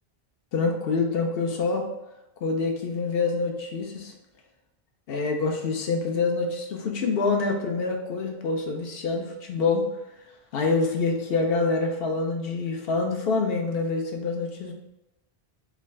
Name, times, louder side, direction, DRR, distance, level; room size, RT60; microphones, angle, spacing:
voice 1, 0.5-1.9 2.4-4.1 5.1-9.9 10.5-14.7, left 4 dB, 70° left, 2 dB, 0.8 m, -26 dB
3.8 x 2.3 x 3.1 m, 0.97 s
omnidirectional pair, 1.0 m